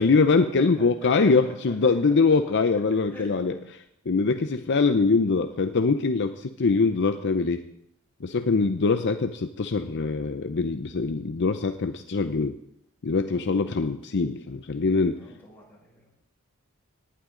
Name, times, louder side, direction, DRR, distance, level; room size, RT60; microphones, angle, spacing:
voice 1, 0.0-3.5 4.1-7.6 8.2-12.6 13.0-15.2, left 4 dB, 55° left, 8 dB, 0.6 m, -23 dB
voice 2, 1.4-2.0 3.1-3.6 4.2-4.5 8.5-8.7 13.2-13.5 15.1-16.1, equal, 10° left, -5 dB, 5.8 m, -48 dB
18.5 x 11.0 x 3.8 m, 0.74 s
head